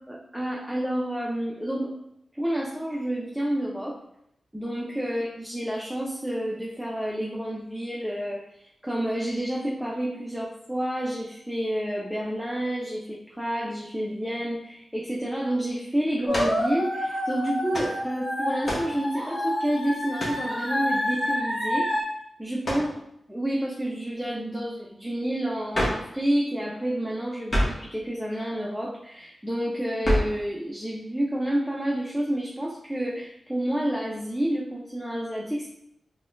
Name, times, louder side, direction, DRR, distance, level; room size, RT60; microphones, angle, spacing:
voice 1, 0.1-1.9 2.3-4.0 4.5-21.9 22.4-22.9 23.3-35.7, right 1 dB, 5° right, -3 dB, 0.5 m, -29 dB
sound 1, 16.3-16.6 17.7-18.0 18.6-19.0 20.2-20.5 22.6-22.9 25.7-26.1 27.5-27.9 30.0-30.4, equal, 50° left, 1.0 m, -27 dB
sound 2, 16.3-22.0, left 1 dB, 20° left, 1.5 m, -28 dB
4.0 x 2.2 x 2.5 m, 0.76 s
cardioid pair, 50°, 0 cm